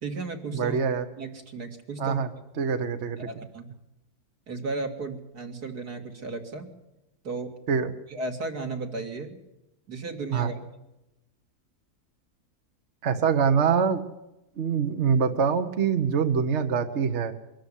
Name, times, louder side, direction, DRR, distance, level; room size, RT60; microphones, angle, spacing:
voice 1, 0.0-0.8 1.2-2.2 3.2-3.7 4.5-6.7 7.2-7.6 8.1-9.4 9.9-10.6, right 3 dB, 80° right, 4 dB, 2.9 m, -34 dB
voice 2, 0.5-1.0 2.0-2.3 2.6-3.2 7.7-7.9 10.3-10.5 13.0-14.0 14.6-17.3, right 6 dB, 50° right, 8 dB, 1.4 m, -24 dB
23.5 x 13.0 x 10.0 m, 0.92 s
omnidirectional pair, 1.6 m